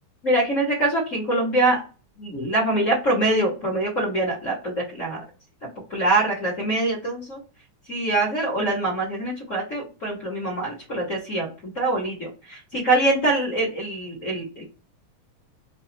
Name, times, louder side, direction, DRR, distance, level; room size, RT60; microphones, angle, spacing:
voice 1, 0.2-1.8 2.2-5.2 5.9-7.4 7.9-14.6, right 2 dB, 45° left, -4 dB, 1.0 m, -24 dB
4.7 x 2.4 x 3.9 m, 0.33 s
omnidirectional pair, 3.6 m